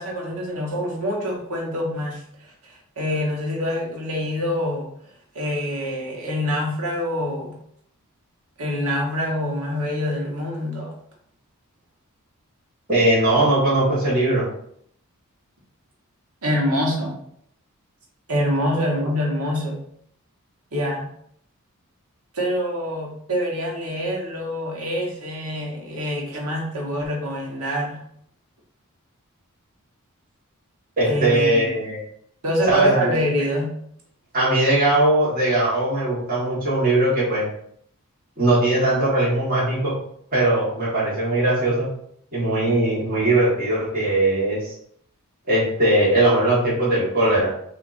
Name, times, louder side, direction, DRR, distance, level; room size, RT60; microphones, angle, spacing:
voice 1, 0.0-4.9 5.3-7.5 8.6-10.9 16.4-17.1 18.3-19.8 20.7-21.1 22.3-28.0 31.0-31.7 32.4-33.7, equal, 80° right, -1 dB, 1.4 m, -25 dB
voice 2, 12.9-14.5 31.0-32.0 32.7-33.1 34.3-37.4 38.4-39.9 40.3-41.9 42.3-44.7 45.5-47.5, right 1 dB, 40° right, -8 dB, 1.8 m, -20 dB
5.8 x 2.8 x 2.7 m, 0.68 s
head